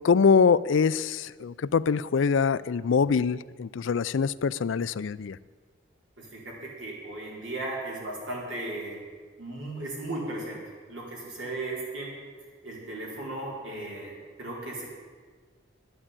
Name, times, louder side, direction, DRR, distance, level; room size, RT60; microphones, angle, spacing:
voice 1, 0.0-5.4, left 5 dB, 80° left, 18 dB, 0.4 m, -24 dB
voice 2, 6.2-9.0 9.4-10.6 10.9-12.1 12.6-14.9, right 2 dB, 80° right, -3 dB, 4.6 m, -36 dB
11.0 x 9.7 x 8.8 m, 1.5 s
head